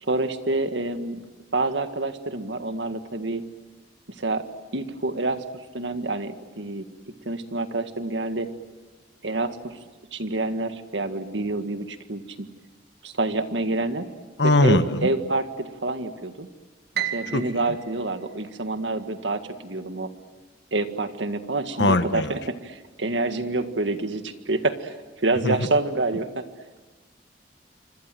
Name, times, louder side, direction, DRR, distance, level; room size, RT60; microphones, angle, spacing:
voice 1, 0.0-1.2 1.5-3.4 4.2-4.4 4.7-5.4 5.7-6.8 7.2-8.5 9.2-9.8 10.1-12.5 13.0-14.1 14.6-16.5 17.1-20.1 20.7-26.4, right 2 dB, 90° right, 8 dB, 1.8 m, -27 dB
voice 2, 14.4-15.1 17.3-17.4 21.8-22.4 25.4-25.7, left 2 dB, 70° left, 10 dB, 1.5 m, -20 dB
Piano, 16.9-19.2, right 10 dB, 60° right, 2.0 m, -34 dB
27.0 x 25.5 x 7.8 m, 1.3 s
head